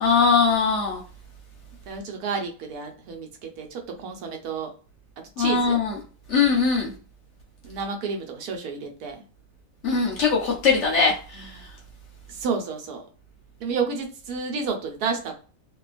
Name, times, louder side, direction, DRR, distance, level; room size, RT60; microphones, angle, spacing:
voice 1, 0.0-1.0 5.4-6.0 6.3-6.9 9.8-11.6, left 5 dB, 60° left, -1 dB, 0.8 m, -21 dB
voice 2, 1.9-3.3 3.6-4.7 5.4-5.8 7.6-9.2 10.7-10.8 12.3-13.0 13.6-15.3, right 5 dB, 75° right, 3 dB, 1.2 m, -30 dB
2.8 x 2.3 x 2.4 m, 0.38 s
omnidirectional pair, 1.7 m